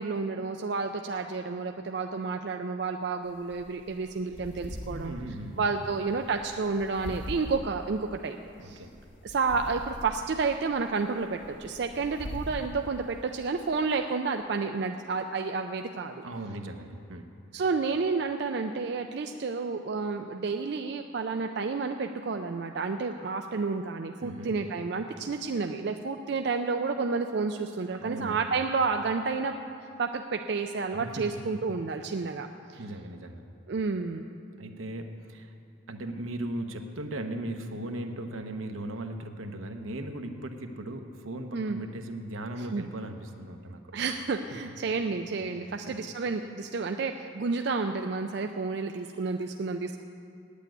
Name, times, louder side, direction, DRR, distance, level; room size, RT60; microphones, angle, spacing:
voice 1, 0.0-5.1 5.6-8.4 8.6-8.8 9.2-16.2 17.5-29.5 30.0-32.5 32.7-32.8 33.7-34.2 41.5-41.8 42.7-42.8 43.9-50.0, right 4 dB, 55° right, 5 dB, 0.4 m, -30 dB
sound 1, 3.2-13.8, left 1 dB, 65° left, 1.5 m, -43 dB
voice 2, 4.7-6.0 8.6-8.9 16.2-17.3 24.2-24.5 27.9-28.4 30.9-31.3 32.7-33.5 34.6-35.5 35.9-43.8 45.9-46.0, right 1 dB, 85° right, 5 dB, 1.0 m, -38 dB
9.4 x 8.3 x 9.0 m, 2.5 s
head